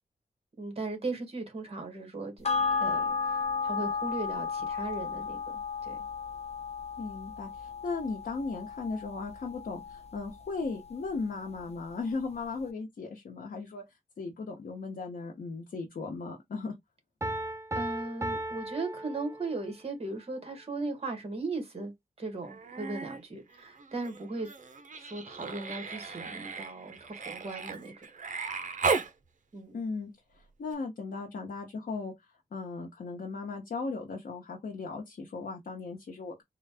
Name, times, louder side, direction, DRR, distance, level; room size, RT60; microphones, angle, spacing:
voice 1, 0.6-2.4 2.8-5.4 5.8-6.0 17.7-24.5 24.9-28.0 29.5-29.8, right 3 dB, 45° right, 1.5 m, -37 dB
sound 1, 2.4-11.2 11.6-11.7, left 5 dB, 45° left, 0.7 m, -34 dB
voice 2, 7.0-16.7 29.7-36.4, left 4 dB, 80° left, 1.0 m, -37 dB
Piano, 17.2-19.8, right 1 dB, 20° right, 0.5 m, -36 dB
Human voice, 22.4-23.2 23.5-29.1 30.7-30.8, right 4 dB, 60° right, 0.7 m, -36 dB
3.8 x 2.3 x 3.4 m
wide cardioid pair, 110°, 15 cm